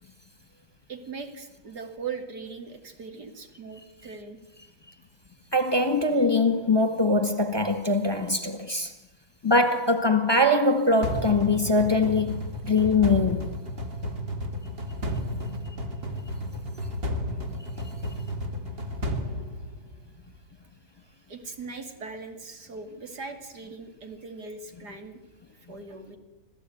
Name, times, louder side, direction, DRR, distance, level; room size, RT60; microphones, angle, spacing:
voice 1, 0.9-4.4 21.3-25.2 25.7-26.2, right 4 dB, 85° right, 3.3 m, -39 dB
voice 2, 5.5-8.9 9.4-13.5, left 2 dB, 15° left, 1.6 m, -22 dB
sound 1, 11.0-20.2, left 1 dB, 35° right, 2.2 m, -32 dB
26.5 x 16.0 x 9.3 m
omnidirectional pair, 1.7 m